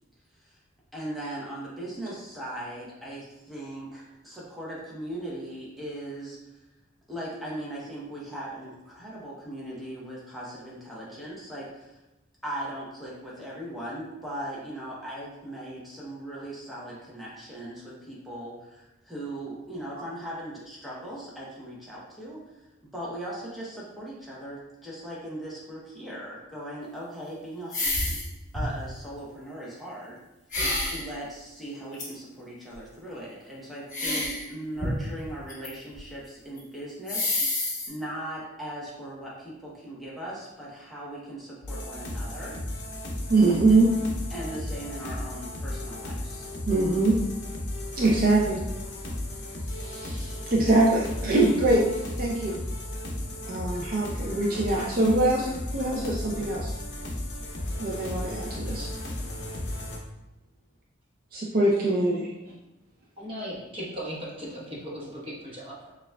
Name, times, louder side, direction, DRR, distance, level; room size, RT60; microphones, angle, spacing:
voice 1, 0.9-6.4 7.1-12.0 12.4-22.5 22.8-28.2 28.5-30.2 30.9-42.6 44.3-46.5, right 1 dB, ahead, -7 dB, 0.7 m, -39 dB
sound 1, 27.7-28.3 28.5-28.9 30.5-31.0 31.9-32.1 33.9-34.4 34.8-35.7 35.9-36.0 36.6-36.7 37.1-37.9, left 2 dB, 40° left, 1.2 m, -28 dB
sound 2, 41.6-60.0, left 1 dB, 55° left, 0.7 m, -35 dB
voice 2, 43.3-44.0 46.7-47.3 48.0-48.6 49.7-52.6 53.4-56.7 57.8-58.9 61.3-62.3, right 2 dB, 45° right, -3 dB, 0.4 m, -23 dB
voice 3, 63.2-65.9, equal, 25° right, -6 dB, 1.0 m, -37 dB
6.6 x 2.3 x 2.2 m, 0.99 s
head